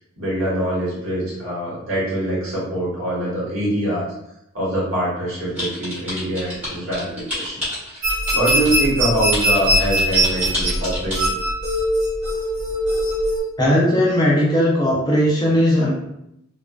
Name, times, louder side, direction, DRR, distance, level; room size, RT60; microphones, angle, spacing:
voice 1, 0.2-4.1 4.5-7.6 7.9-11.3, right 1 dB, 75° right, -7 dB, 1.2 m, -24 dB
sound 1, 5.6-8.8 9.3-11.1, left 1 dB, 10° right, 1.1 m, -28 dB
sound 2, 8.0-13.4, equal, 55° right, 0.8 m, -21 dB
voice 2, 13.6-15.9, equal, 20° left, -5 dB, 0.5 m, -17 dB
2.3 x 2.3 x 2.3 m, 0.81 s
head